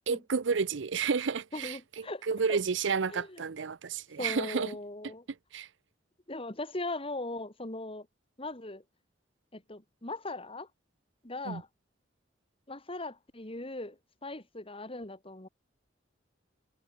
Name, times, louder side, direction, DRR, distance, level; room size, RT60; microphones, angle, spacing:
voice 1, 0.1-4.8 5.5-5.7 11.5-11.6, right 5 dB, 75° right, 0.6 m, -31 dB
voice 2, 1.5-2.2 2.5-2.6 3.1-3.4 4.2-5.2 6.3-8.1 8.4-8.8 9.5-10.7 11.2-11.7 12.7-15.5, left 2 dB, 30° left, 2.9 m, -39 dB
head